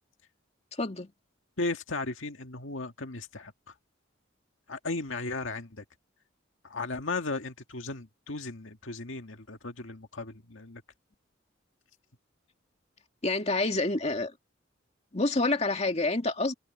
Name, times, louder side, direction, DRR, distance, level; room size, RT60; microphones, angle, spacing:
voice 1, 0.7-1.1 13.2-14.3 15.1-16.5, left 2 dB, 35° left, 2.3 m, -28 dB
voice 2, 1.6-3.7 4.7-5.9 6.6-10.8, left 3 dB, 85° left, 1.9 m, -36 dB
head